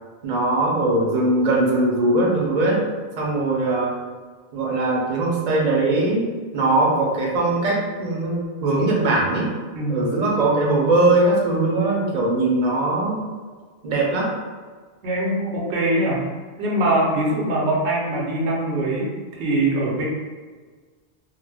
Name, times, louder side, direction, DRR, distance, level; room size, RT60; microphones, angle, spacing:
voice 1, 0.2-2.8 3.2-3.9 4.5-6.3 6.5-9.5 9.9-13.3 13.8-14.3, right 2 dB, 45° right, -3 dB, 0.6 m, -20 dB
voice 2, 15.0-16.2 16.6-20.0, right 1 dB, 85° right, -3 dB, 0.9 m, -22 dB
2.4 x 2.1 x 3.3 m, 1.5 s
omnidirectional pair, 1.1 m